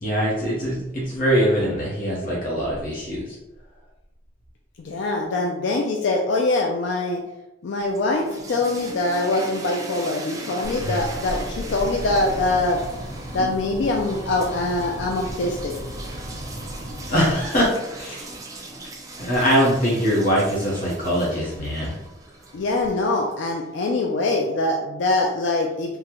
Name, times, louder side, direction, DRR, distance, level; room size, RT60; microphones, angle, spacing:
voice 1, 0.0-3.4 10.8-11.0 17.0-17.7 17.9-18.3 19.2-22.0, equal, 45° left, -6 dB, 0.8 m, -22 dB
voice 2, 4.8-7.2 7.6-12.8 13.3-15.8 22.5-26.0, left 2 dB, 65° left, 0 dB, 0.3 m, -23 dB
sound 1, 7.7-23.8, right 2 dB, 15° right, 0.3 m, -39 dB
sound 2, 10.6-17.5, equal, 80° right, 0.8 m, -35 dB
3.6 x 2.1 x 2.9 m, 0.97 s
head